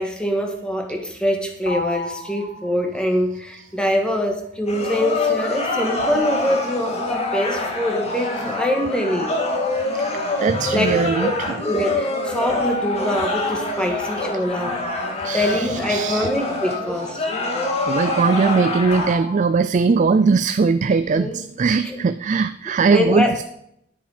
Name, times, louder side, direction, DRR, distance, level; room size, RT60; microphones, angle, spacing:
voice 1, 0.0-9.3 10.7-11.3 11.6-14.8 15.3-17.3 21.1-21.4 21.8-22.0 22.9-23.3, equal, 5° left, 3 dB, 1.7 m, -24 dB
sound 1, 1.7-3.2 6.0-8.4 12.5-15.6 18.9-19.4, left 1 dB, 65° left, 2.8 m, -33 dB
sound 2, 4.7-19.1, left 2 dB, 35° left, 1.9 m, -26 dB
voice 2, 9.9-11.6 13.8-13.9 14.7-14.8 15.2-16.3 17.2-23.4, right 4 dB, 40° right, 12 dB, 0.4 m, -20 dB
Drum, 10.5-14.0, left 1 dB, 60° right, 1.9 m, -38 dB
10.5 x 8.4 x 5.0 m, 0.73 s
head